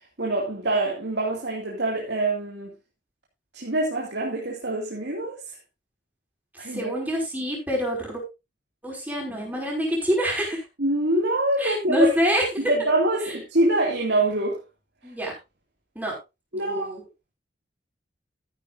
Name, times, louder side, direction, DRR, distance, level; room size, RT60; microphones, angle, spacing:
voice 1, 0.2-2.7 3.5-5.4 6.6-6.9 10.8-12.1 12.7-14.6 16.5-16.9, right 1 dB, 80° right, 2.4 m, -25 dB
voice 2, 6.7-8.2 8.8-10.6 11.6-12.4 13.2-13.3 15.0-15.3 16.0-16.1 16.5-17.0, equal, 10° right, 5.6 m, -26 dB
14.0 x 10.5 x 2.6 m
head